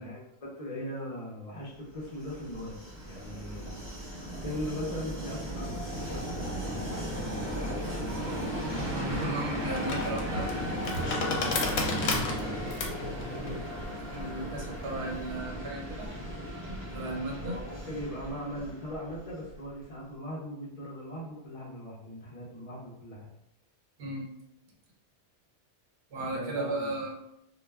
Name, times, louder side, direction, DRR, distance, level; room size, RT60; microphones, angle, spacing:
voice 1, 0.0-2.8 3.0-3.8 4.4-7.7 11.2-11.5 11.8-12.5 16.9-23.3 26.1-27.0, equal, 40° left, -3 dB, 0.6 m, -40 dB
Train, 1.9-19.7, equal, 30° right, 0.9 m, -36 dB
sound 1, 8.6-15.3, left 2 dB, 75° left, 0.8 m, -34 dB
voice 2, 8.7-10.5 13.3-13.5 14.1-16.1 16.9-17.5 24.0-24.3 26.1-27.1, right 2 dB, 65° right, -1 dB, 0.8 m, -35 dB
2.2 x 2.1 x 3.3 m, 0.77 s
omnidirectional pair, 1.2 m